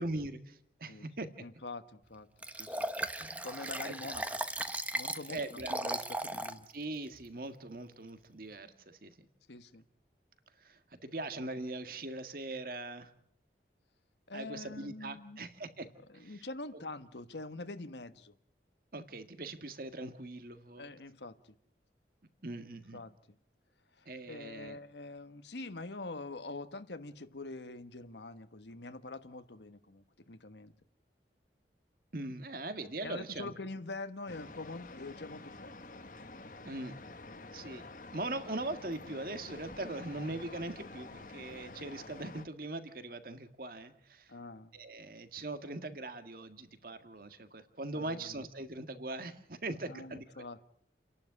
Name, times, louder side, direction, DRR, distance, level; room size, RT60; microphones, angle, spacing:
voice 1, 0.0-1.3 3.2-3.9 5.3-5.8 6.7-9.1 10.6-13.1 14.3-15.9 16.1-16.4 16.7-16.8 18.9-20.9 22.4-23.0 24.1-24.8 32.1-33.5 36.6-37.1 37.5-37.9 38.1-44.3 44.7-50.4, right 2 dB, 55° right, 9 dB, 1.8 m, -41 dB
voice 2, 1.4-2.3 2.6-2.9 3.4-4.4 4.9-6.7 9.5-9.8 14.3-15.4 16.1-18.3 20.8-21.5 22.9-23.1 24.0-30.7 33.0-36.0 44.3-44.7 47.9-48.5 49.8-50.6, left 2 dB, 75° left, 10 dB, 1.3 m, -45 dB
Liquid, 2.4-6.6 7.1-7.2, right 1 dB, 10° right, 1.0 m, -37 dB
sound 1, 34.3-42.5, left 2 dB, 50° left, 1.3 m, -49 dB
30.0 x 11.5 x 9.6 m, 0.68 s
head